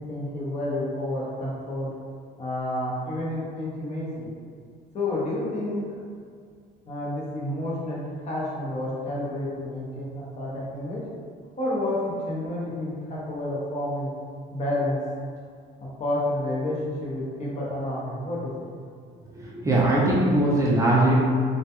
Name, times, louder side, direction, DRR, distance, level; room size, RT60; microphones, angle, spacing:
voice 1, 0.0-1.9 2.4-4.3 4.9-5.8 6.9-11.0 11.6-14.1 14.5-15.0 15.8-18.7, left 1 dB, 40° left, -6 dB, 0.7 m, -30 dB
voice 2, 19.4-21.1, right 1 dB, 20° right, -6 dB, 0.4 m, -21 dB
2.2 x 2.2 x 2.8 m, 2.1 s
cardioid pair, 110°, 17 cm